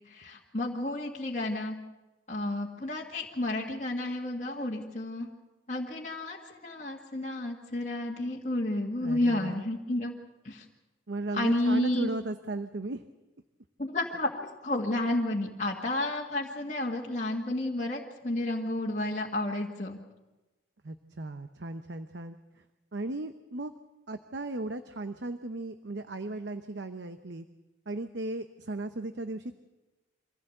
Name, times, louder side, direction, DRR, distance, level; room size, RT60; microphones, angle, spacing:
voice 1, 0.1-1.8 2.3-5.3 5.7-10.1 10.4-10.7 11.3-12.1 13.8-20.0, left 1 dB, 40° left, -3 dB, 1.9 m, -31 dB
voice 2, 9.0-9.6 11.1-13.0 20.8-22.4 22.9-23.7 24.1-27.4 27.9-29.6, right 2 dB, 65° right, 9 dB, 0.8 m, -36 dB
24.5 x 16.0 x 7.9 m, 1.1 s
head